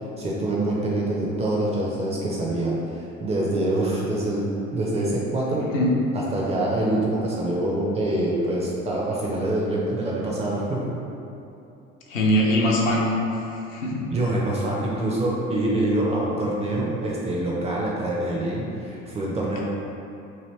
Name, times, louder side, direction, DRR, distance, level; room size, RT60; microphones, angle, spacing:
voice 1, 0.2-5.7 6.1-10.8 14.1-19.6, right 1 dB, 15° right, -4 dB, 0.4 m, -25 dB
voice 2, 12.1-13.1 13.3-13.4 13.7-14.0, equal, 75° left, -3 dB, 0.6 m, -21 dB
2.8 x 2.7 x 3.1 m, 2.8 s
figure-of-eight pair, 60°, 39 cm